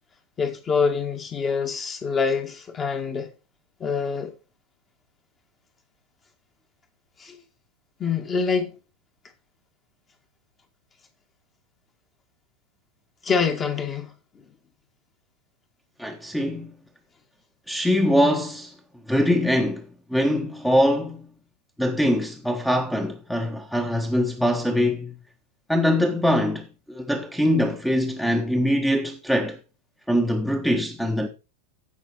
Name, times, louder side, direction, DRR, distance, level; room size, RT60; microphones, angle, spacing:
voice 1, 0.4-3.3 3.8-4.3 7.2-7.4 8.0-8.7 13.2-14.1, left 5 dB, 20° left, 1.9 m, -25 dB
voice 2, 16.0-16.7 17.7-18.7 19.1-21.3 21.8-25.1 25.7-29.6 30.1-31.3, equal, ahead, 1.3 m, -23 dB
15.5 x 5.7 x 4.4 m
figure-of-eight pair, 90°, 0 cm